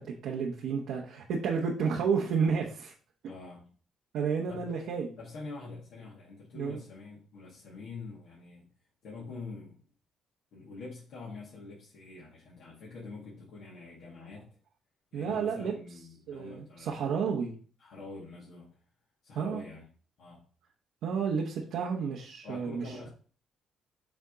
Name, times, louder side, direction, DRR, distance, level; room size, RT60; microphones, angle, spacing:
voice 1, 0.0-2.9 4.1-5.1 6.5-6.8 15.1-15.7 16.3-17.5 19.3-19.6 21.0-22.9, right 6 dB, 85° right, -2 dB, 1.0 m, -31 dB
voice 2, 3.2-3.6 4.5-4.7 5.2-8.7 9.0-9.8 10.5-14.5 15.1-17.1 17.8-18.7 19.2-19.8 20.2-20.4 22.4-23.1, left 3 dB, 80° left, -6 dB, 2.3 m, -45 dB
7.2 x 3.6 x 4.0 m, 0.40 s
cardioid pair, 90°, 0 cm